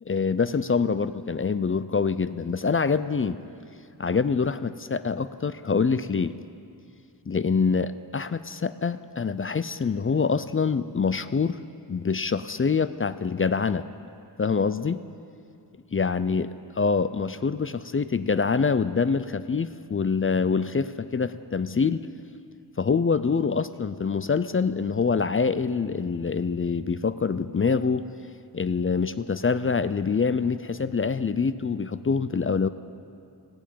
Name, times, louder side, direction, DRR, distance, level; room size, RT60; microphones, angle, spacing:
voice 1, 0.1-3.4 4.0-6.3 7.3-11.6 11.9-13.8 14.4-15.0 15.9-16.5 16.7-22.1 22.8-28.0 28.5-32.7, left 5 dB, 30° left, 14 dB, 0.4 m, -25 dB
15.5 x 8.4 x 9.2 m, 2.5 s
wide cardioid pair, 85°, 43 cm